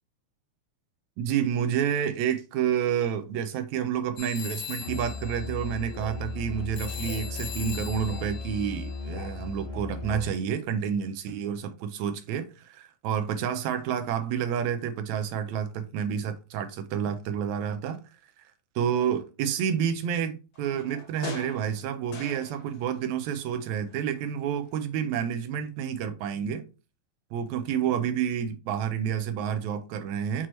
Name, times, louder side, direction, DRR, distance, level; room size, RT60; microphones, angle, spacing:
voice 1, 1.2-18.0 18.4-18.5 18.7-26.6 27.3-30.5, right 8 dB, 80° right, 1.7 m, -29 dB
sound 1, 4.2-9.6, left 7 dB, 90° left, 2.2 m, -41 dB
Musical instrument, 4.8-10.4, left 3 dB, 50° left, 0.5 m, -36 dB
sound 2, 20.5-23.0 23.2-24.3 24.7-24.8, left 3 dB, 75° left, 0.9 m, -43 dB
6.0 x 2.9 x 3.0 m
omnidirectional pair, 3.5 m